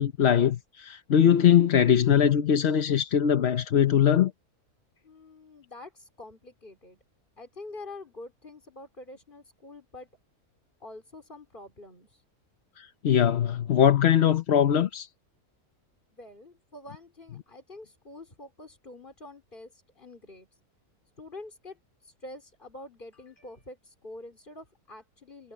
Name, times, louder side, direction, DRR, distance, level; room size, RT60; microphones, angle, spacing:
voice 1, 0.0-4.3 12.8-15.1, left 9 dB, 50° left, 1.0 m, -21 dB
voice 2, 5.0-7.0 7.4-10.1 10.8-12.1 16.1-20.5 21.2-21.8 22.0-25.5, left 2 dB, 35° left, 4.2 m, -46 dB
omnidirectional pair, 1.6 m